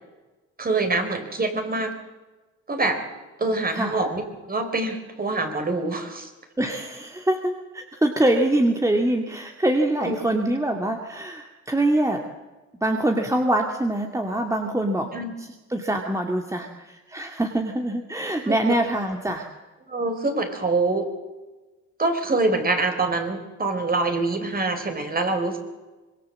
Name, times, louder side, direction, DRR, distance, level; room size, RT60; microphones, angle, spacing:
voice 1, 0.6-1.9 2.7-3.0 3.4-4.2 4.5-6.3 10.0-10.2 15.1-15.3 18.5-18.7 19.9-21.1 22.0-25.6, right 3 dB, 30° right, 6 dB, 4.3 m, -25 dB
voice 2, 6.6-12.2 12.8-15.1 15.4-19.5, right 1 dB, 10° right, 3 dB, 2.2 m, -24 dB
25.5 x 21.5 x 7.7 m, 1.2 s
cardioid pair, 90°, 30 cm